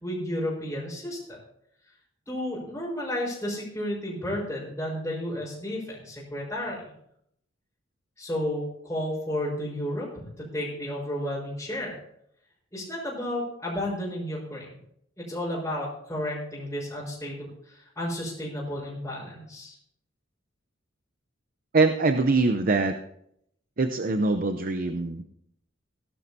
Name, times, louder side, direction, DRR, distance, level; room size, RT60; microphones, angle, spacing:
voice 1, 0.0-1.4 2.3-6.8 8.2-12.0 12.7-14.8 15.2-19.8, left 1 dB, 15° left, -10 dB, 4.7 m, -32 dB
voice 2, 21.7-23.0 23.8-25.2, right 3 dB, 45° right, 8 dB, 0.6 m, -23 dB
18.0 x 11.5 x 2.8 m, 0.72 s
head